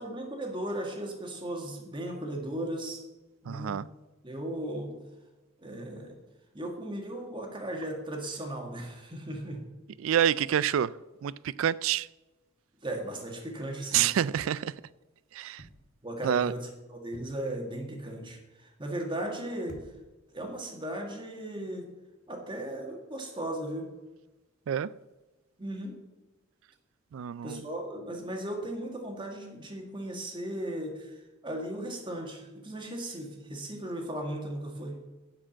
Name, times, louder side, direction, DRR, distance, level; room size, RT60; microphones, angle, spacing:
voice 1, 0.0-3.0 3.4-3.9 4.2-5.0 5.6-6.2 6.5-9.6 12.8-14.1 16.0-19.8 20.3-21.9 22.3-23.9 25.6-26.0 27.4-35.0, right 1 dB, 25° right, 1.7 m, -36 dB
voice 2, 3.5-3.9 10.0-10.9 11.2-12.1 13.9-14.7 15.3-15.6 16.2-16.5 24.7-24.9 27.1-27.6, right 9 dB, 75° right, 0.3 m, -27 dB
sound 1, 15.6-16.1 17.1-17.6 19.7-20.3 21.1-21.2, equal, 45° left, 1.0 m, -52 dB
10.0 x 5.0 x 7.6 m
head